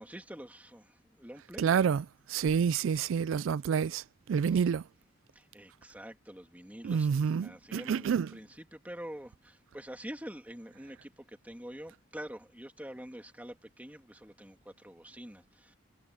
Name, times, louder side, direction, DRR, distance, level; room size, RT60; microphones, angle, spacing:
voice 1, 0.0-1.8 4.5-4.7 5.3-15.7, equal, 10° right, 2.6 m, -46 dB
voice 2, 1.6-4.8 6.8-8.3, right 7 dB, 90° right, 0.3 m, -28 dB
head